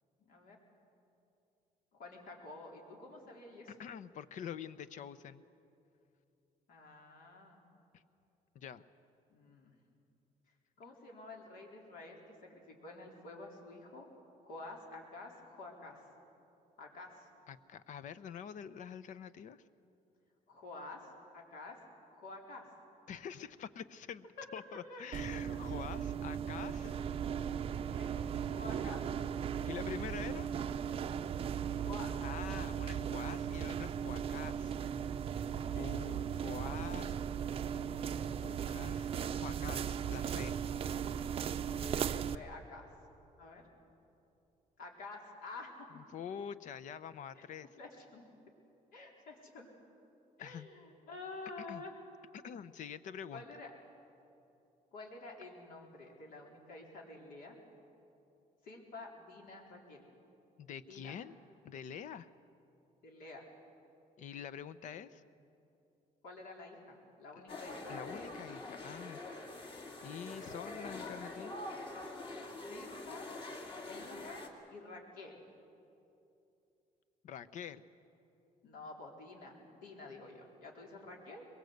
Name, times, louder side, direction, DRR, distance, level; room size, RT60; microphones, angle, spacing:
voice 1, 0.2-0.6 1.9-3.8 6.7-7.6 9.3-9.8 10.8-14.1 14.4-16.0 16.8-17.3 20.5-21.1 21.3-21.8 22.1-22.7 24.9-25.1 26.8-27.0 27.8-28.2 28.6-29.1 31.8-32.2 35.7-35.9 41.6-42.9 43.4-43.6 44.8-45.9 47.4-47.5 47.8-48.2 48.9-49.7 50.4-52.0 53.3-53.7 54.9-57.6 58.6-60.0 60.9-61.1 63.0-63.5 66.2-68.3 72.7-73.3 73.7-74.4 74.7-75.4 78.6-81.4, left 2 dB, 75° left, 0 dB, 4.0 m, -50 dB
voice 2, 3.8-5.4 7.9-8.0 8.5-8.8 17.5-19.6 23.1-24.3 24.5-26.9 29.6-30.5 32.2-34.7 35.7-37.1 37.8-40.5 45.9-47.7 50.4-50.7 51.7-51.8 52.4-53.5 60.6-61.4 61.6-62.3 64.2-65.2 67.9-69.2 70.0-71.6 77.2-77.8, left 8 dB, 60° left, 15 dB, 0.8 m, -46 dB
sound 1, 25.1-42.3, right 8 dB, 40° right, 0.6 m, -37 dB
sound 2, 67.5-74.5, left 2 dB, 35° left, 2.4 m, -45 dB
22.0 x 22.0 x 8.0 m, 2.8 s
cardioid pair, 150°, 15 cm